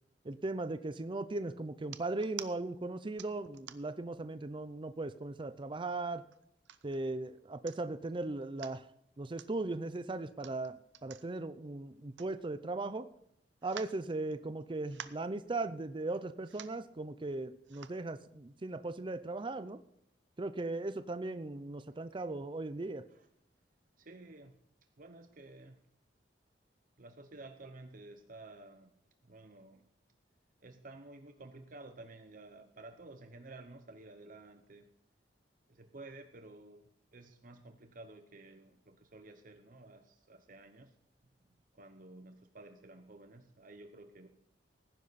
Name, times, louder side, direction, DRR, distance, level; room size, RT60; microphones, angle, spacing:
voice 1, 0.2-6.2 6.8-8.9 9.2-13.1 13.6-19.8 20.4-23.1, right 2 dB, 30° right, 12 dB, 0.5 m, -38 dB
sound 1, 1.8-2.5 3.2-4.0 4.6-4.7 5.0-5.7 6.3-7.0 7.4-7.5 7.7-8.0 8.4-8.8 9.3-9.5 10.3-12.8 13.1-13.2 13.6-14.6 14.8-15.3 16.1-16.2 16.4-16.8 17.6-18.0 18.6-18.7, right 9 dB, 80° right, 0.8 m, -49 dB
voice 2, 24.0-24.6 25.0-25.8 27.0-28.9 29.2-29.9 30.6-34.9 35.7-40.9 41.7-44.3, right 2 dB, 50° right, 7 dB, 0.9 m, -53 dB
17.5 x 10.0 x 4.1 m, 0.73 s
head